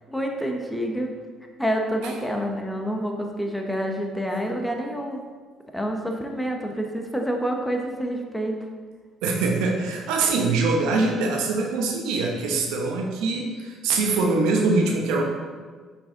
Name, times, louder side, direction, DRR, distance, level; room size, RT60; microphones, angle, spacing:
voice 1, 0.1-1.1 1.6-5.2 5.7-8.6, equal, 5° left, 2 dB, 1.3 m, -28 dB
voice 2, 9.2-15.2, right 3 dB, 80° right, 1 dB, 1.0 m, -23 dB
7.2 x 5.6 x 3.9 m, 1.5 s
supercardioid pair, 65°, 0 cm